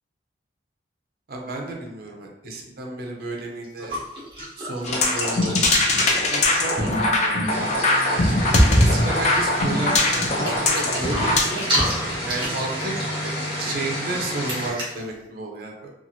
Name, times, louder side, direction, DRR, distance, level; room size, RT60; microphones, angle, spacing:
voice 1, 1.3-3.9 4.6-5.7 6.1-7.4 8.8-11.7 12.2-15.9, right 2 dB, 55° right, 0 dB, 0.5 m, -32 dB
Candy Bar Mastication, 3.2-3.3 3.6-7.5 7.8-7.9 8.1-8.5 8.9-9.4 10.0-15.0, equal, 25° right, 0.9 m, -31 dB
sound 1, 4.8-11.4, left 2 dB, 40° left, 0.4 m, -21 dB
sound 2, 7.5-14.7, equal, 75° left, 1.3 m, -30 dB
2.9 x 2.4 x 2.7 m, 0.89 s
head